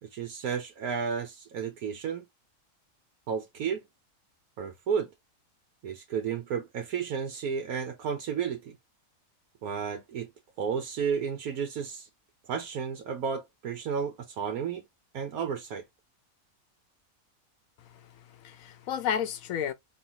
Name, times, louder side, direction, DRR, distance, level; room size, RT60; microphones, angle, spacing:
voice 1, 0.0-2.3 3.3-3.8 4.6-5.1 5.8-8.8 9.6-10.3 10.6-12.1 12.5-14.8 15.1-15.8, right 6 dB, 80° right, 1.3 m, -32 dB
voice 2, 17.9-19.7, left 8 dB, 70° left, 1.1 m, -32 dB
4.4 x 3.2 x 2.8 m
omnidirectional pair, 1.5 m